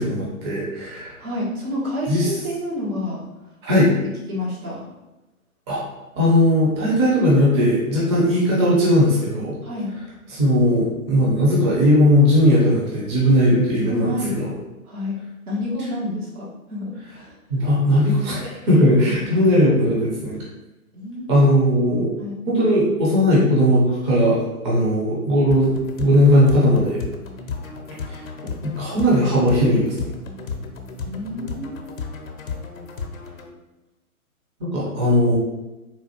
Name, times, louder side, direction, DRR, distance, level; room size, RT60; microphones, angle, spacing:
voice 1, 0.0-1.2 2.1-2.4 3.6-3.9 5.7-5.8 6.2-9.6 10.3-14.5 17.5-20.4 21.3-22.1 22.5-27.0 28.1-28.2 28.6-30.0 34.6-35.4, equal, 20° right, -6 dB, 0.6 m, -18 dB
voice 2, 1.2-3.2 3.6-3.9 4.3-4.8 9.6-9.9 13.8-14.5 14.8-15.2 15.5-17.3 20.9-21.4 22.2-22.4 31.0-31.8, left 1 dB, 75° right, -5 dB, 1.5 m, -29 dB
sound 1, 25.5-33.5, left 4 dB, 65° left, 0.7 m, -34 dB
3.9 x 2.3 x 2.8 m, 1.0 s
figure-of-eight pair, 125°, 44 cm